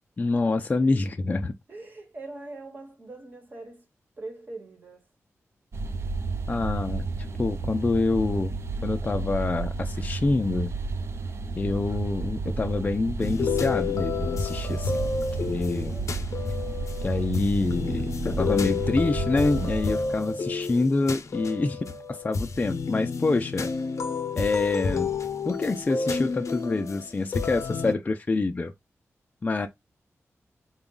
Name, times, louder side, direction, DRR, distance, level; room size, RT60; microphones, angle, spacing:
voice 1, 0.2-1.5 6.5-7.1 7.4-8.6 8.8-10.7 11.6-14.9 15.4-16.0 17.0-23.7 24.4-25.1 25.4-28.7 29.4-29.7, left 3 dB, 30° left, 0.4 m, -26 dB
voice 2, 1.7-3.9 4.2-5.1 15.9-16.3, right 2 dB, 35° right, 1.2 m, -42 dB
sound 1, 5.7-19.8, right 4 dB, 55° right, 0.5 m, -32 dB
sound 2, 13.2-27.9, left 5 dB, 75° left, 0.6 m, -30 dB
3.9 x 2.3 x 3.7 m
wide cardioid pair, 135°, 5 cm